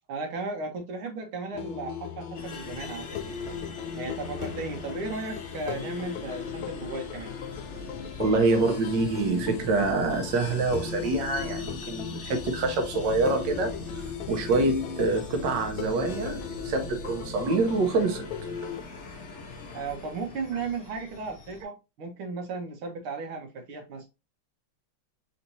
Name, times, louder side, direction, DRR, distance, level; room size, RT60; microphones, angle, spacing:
voice 1, 0.1-3.1 4.0-7.3 19.7-24.1, right 4 dB, 80° right, 2.0 m, -35 dB
sound 1, 1.5-18.8, left 7 dB, 75° left, 1.4 m, -37 dB
sound 2, 2.3-21.6, left 3 dB, 45° left, 1.0 m, -42 dB
voice 2, 8.2-18.3, right 3 dB, 60° right, 1.5 m, -26 dB
4.4 x 4.2 x 2.7 m
omnidirectional pair, 2.4 m